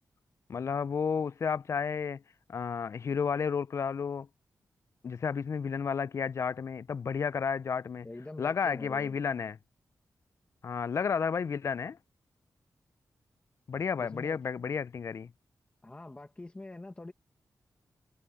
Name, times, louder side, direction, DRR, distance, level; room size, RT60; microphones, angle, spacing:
voice 1, 0.5-2.2 2.5-4.3 5.0-8.1 8.4-9.6 10.6-12.0 13.7-15.3, left 6 dB, 45° left, 0.4 m, -32 dB
voice 2, 8.0-9.2 14.0-14.4 15.8-17.1, left 2 dB, 20° left, 1.3 m, -44 dB
wide cardioid pair, 125°, 7 cm